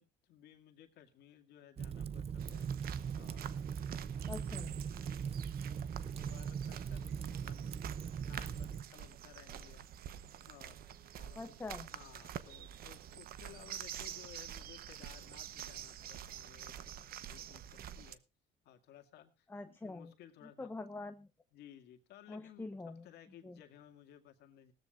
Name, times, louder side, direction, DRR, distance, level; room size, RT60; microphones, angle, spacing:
voice 1, 0.0-3.6 6.1-7.7 8.3-10.1 10.5-11.6 11.9-16.9 17.3-18.2 18.6-20.7 21.5-24.7, left 10 dB, 75° left, 6 dB, 2.1 m, -58 dB
Fire, 1.8-8.8, right 7 dB, 35° right, 0.7 m, -40 dB
sound 1, 2.4-18.1, right 10 dB, 60° right, 1.0 m, -48 dB
voice 2, 4.3-4.7 11.3-11.9 19.5-20.1 20.6-21.3 22.3-23.1 23.4-23.6, left 3 dB, 15° left, 8 dB, 1.0 m, -44 dB
19.0 x 13.5 x 2.5 m, 0.28 s
cardioid pair, 110°, 17 cm